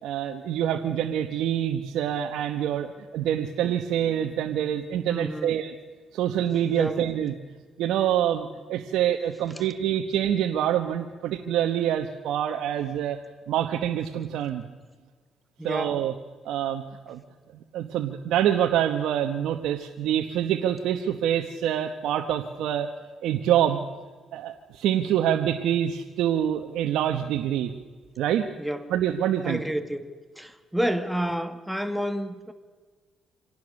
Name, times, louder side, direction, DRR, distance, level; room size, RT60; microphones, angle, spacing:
voice 1, 0.0-5.7 6.1-7.3 7.8-13.2 13.5-14.6 15.6-16.1 16.4-17.2 17.7-22.9 23.2-23.8 24.3-27.7 28.2-28.5 28.9-29.6, right 10 dB, 85° right, 1.1 m, -26 dB
voice 2, 5.1-5.5 6.7-7.0 15.6-16.0 28.6-28.9 29.4-30.1 30.4-32.5, equal, ahead, 1.6 m, -29 dB
26.0 x 18.0 x 6.5 m
cardioid pair, 90°, 0 cm